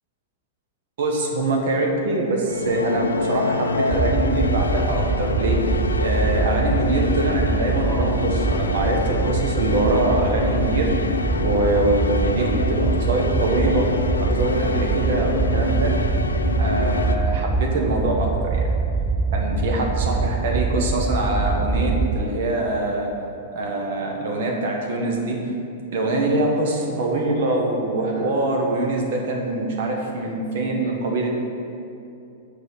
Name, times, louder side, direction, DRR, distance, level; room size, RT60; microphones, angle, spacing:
voice 1, 1.0-5.6 6.0-13.9 14.2-15.9 16.6-18.7 19.3-23.1 23.5-25.4 25.9-31.3, right 2 dB, 55° right, 0 dB, 1.4 m, -24 dB
sound 1, 2.5-17.2, left 3 dB, 75° left, 0.4 m, -26 dB
sound 2, 3.9-22.3, right 4 dB, 10° right, 0.3 m, -24 dB
6.8 x 4.9 x 6.9 m, 2.6 s
figure-of-eight pair, 100°, 0 cm